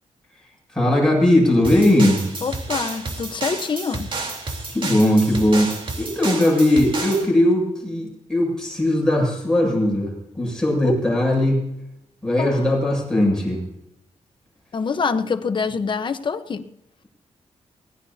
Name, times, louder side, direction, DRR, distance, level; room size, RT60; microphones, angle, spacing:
voice 1, 0.7-2.3 4.7-11.7 12.2-13.6, left 1 dB, 5° left, 7.8 m, -19 dB
sound 1, 1.6-7.3, right 3 dB, 45° right, 3.7 m, -31 dB
voice 2, 2.4-4.1 10.8-10.9 12.4-12.6 14.7-16.7, left 5 dB, 45° left, 1.1 m, -25 dB
23.0 x 18.5 x 2.9 m
wide cardioid pair, 170°, 12 cm